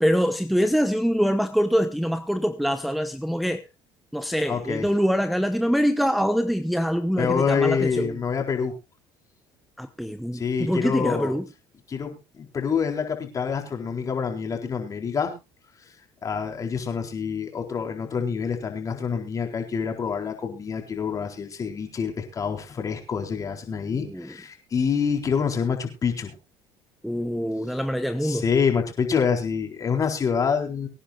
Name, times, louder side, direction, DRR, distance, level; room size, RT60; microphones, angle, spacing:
voice 1, 0.0-3.6 4.1-8.1 9.8-11.5 23.9-24.3 27.0-28.5, equal, ahead, 0.9 m, -24 dB
voice 2, 4.5-4.9 7.2-8.8 10.3-11.3 11.9-15.3 16.2-26.3 27.7-27.8 28.2-30.9, left 6 dB, 35° left, 4.2 m, -26 dB
24.5 x 10.0 x 2.4 m
supercardioid pair, 95°, 9 cm